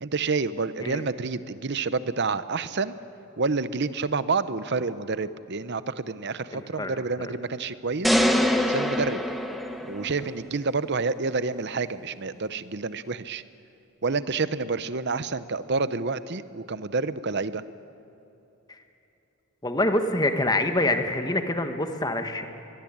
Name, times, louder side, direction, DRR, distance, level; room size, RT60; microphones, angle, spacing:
voice 1, 0.0-2.9 3.4-8.2 8.7-9.2 9.9-13.4 14.0-17.6, right 4 dB, 50° right, 14 dB, 0.8 m, -28 dB
voice 2, 6.5-7.3 18.7-18.8 19.6-22.5, left 1 dB, 15° left, 6 dB, 1.5 m, -26 dB
sound 1, 8.0-10.3, equal, ahead, 1.2 m, -24 dB
23.0 x 22.5 x 8.7 m, 2.9 s
head